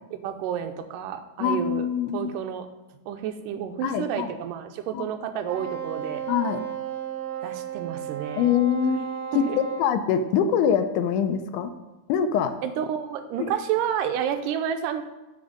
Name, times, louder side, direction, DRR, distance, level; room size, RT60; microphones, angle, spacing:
voice 1, 0.1-1.9 2.1-2.7 3.1-6.3 7.4-8.5 9.3-9.6 12.6-15.0, right 9 dB, 90° right, 9 dB, 2.3 m, -30 dB
voice 2, 1.4-2.3 3.8-4.3 4.9-5.0 6.3-6.6 8.4-9.0 9.4-11.7 12.1-12.6 13.4-13.5, left 8 dB, 80° left, 10 dB, 2.0 m, -24 dB
Wind instrument woodwind instrument, 5.4-9.9, right 8 dB, 75° right, 2.7 m, -34 dB
9.5 x 5.4 x 5.0 m, 1.1 s
omnidirectional pair, 3.7 m